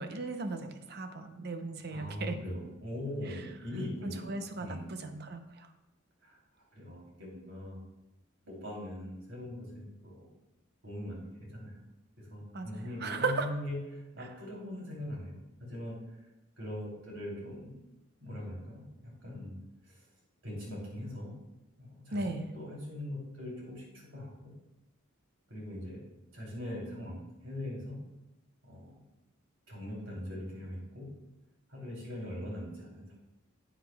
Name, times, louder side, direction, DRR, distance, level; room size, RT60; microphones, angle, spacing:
voice 1, 0.0-2.4 4.0-5.7 12.5-13.5 22.1-22.5, right 3 dB, 50° right, 7 dB, 0.7 m, -36 dB
voice 2, 1.9-4.3 4.6-4.9 6.2-6.4 6.7-7.8 8.5-10.3 10.8-11.8 12.2-16.0 16.6-17.8 18.2-19.6 19.9-20.0 20.4-21.4 21.8-24.5 25.5-26.0 26.3-28.0 28.6-29.0 29.7-31.1 31.7-33.1, left 1 dB, 70° right, -3 dB, 3.2 m, -41 dB
9.9 x 8.9 x 2.3 m, 0.98 s
head